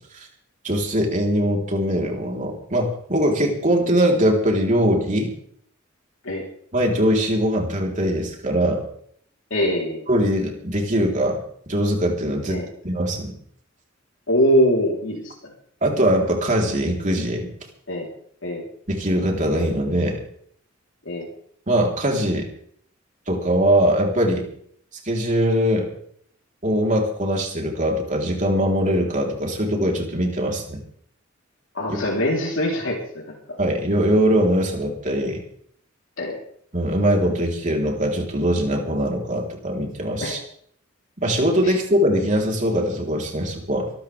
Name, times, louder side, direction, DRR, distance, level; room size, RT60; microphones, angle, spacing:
voice 1, 0.6-5.3 6.7-8.8 10.1-13.3 15.8-17.5 18.9-20.2 21.7-22.5 23.3-24.5 25.0-25.9 26.6-30.8 31.9-32.0 33.6-35.4 36.7-40.4 41.2-43.9, equal, 40° right, 0 dB, 3.9 m, -21 dB
voice 2, 9.5-10.1 12.5-12.7 14.3-15.3 17.9-18.1 18.4-18.6 21.1-21.3 31.7-33.4 36.2-36.4 40.2-40.4 41.6-41.7, equal, 70° left, -3 dB, 3.8 m, -22 dB
24.0 x 13.5 x 3.5 m, 0.63 s
head